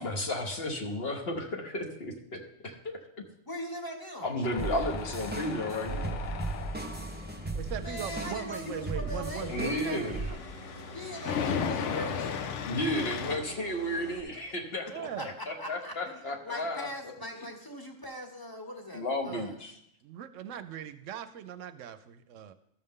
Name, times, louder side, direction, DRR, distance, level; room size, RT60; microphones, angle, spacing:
voice 1, 0.0-3.0 4.2-6.2 9.5-10.2 12.7-15.1 15.5-16.9 18.9-19.7, left 1 dB, 50° left, 3 dB, 1.3 m, -33 dB
voice 2, 3.4-4.3 7.8-9.5 10.9-12.5 15.0-15.3 15.6-19.5, equal, 20° left, 3 dB, 1.1 m, -41 dB
Tools, 4.4-13.4, left 6 dB, 70° left, 1.0 m, -37 dB
sound 1, 4.6-10.3, right 2 dB, 10° right, 0.5 m, -37 dB
sound 2, 4.7-14.2, left 2 dB, 35° left, 0.7 m, -49 dB
voice 3, 7.5-10.4 14.9-15.3 19.3-19.5 20.0-22.5, right 9 dB, 75° right, 11 dB, 0.9 m, -40 dB
13.0 x 6.6 x 3.7 m, 0.77 s
omnidirectional pair, 1.3 m